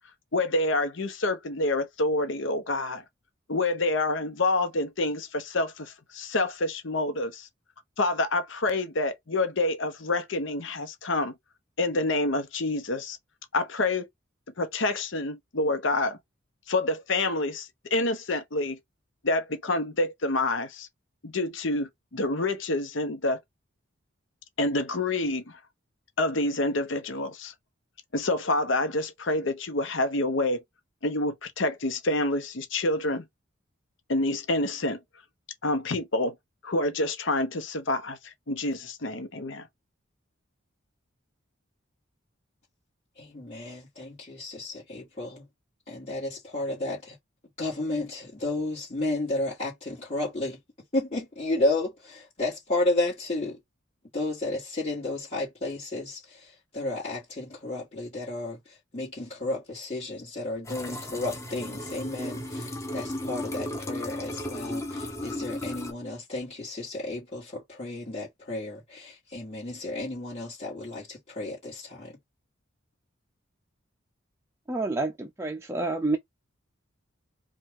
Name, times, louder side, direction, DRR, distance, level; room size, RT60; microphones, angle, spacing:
voice 1, 0.3-3.0 3.5-7.5 8.0-11.3 11.8-13.2 13.5-14.1 14.6-16.2 16.7-18.8 19.2-20.9 21.2-23.4 24.6-25.6 26.2-27.5 28.1-30.6 31.0-33.3 34.1-35.0 35.6-36.3 36.6-39.7, left 2 dB, 70° left, 1.0 m, -27 dB
voice 2, 43.2-45.5 45.9-47.2 47.6-50.6 50.9-53.6 54.1-72.2, left 2 dB, 35° left, 2.0 m, -32 dB
sound 1, 60.6-65.9, left 1 dB, 15° left, 0.8 m, -35 dB
voice 3, 74.7-76.2, right 2 dB, 15° right, 0.4 m, -28 dB
5.0 x 2.4 x 3.6 m
head